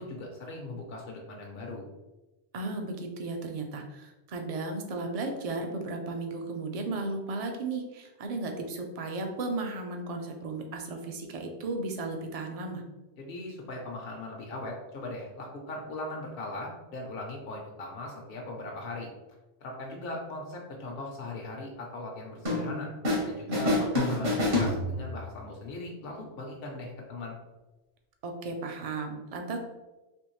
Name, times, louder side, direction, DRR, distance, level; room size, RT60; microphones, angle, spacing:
voice 1, 0.0-1.9 13.2-19.1 19.6-22.9 23.2-27.4, left 2 dB, 65° left, -1 dB, 0.8 m, -39 dB
voice 2, 2.5-12.8 23.5-23.8 28.2-29.6, right 3 dB, 45° right, 3 dB, 0.5 m, -35 dB
sound 1, 22.4-23.3 23.5-25.3, left 2 dB, 60° right, 1.4 m, -27 dB
3.5 x 3.0 x 3.0 m, 1.1 s
omnidirectional pair, 1.1 m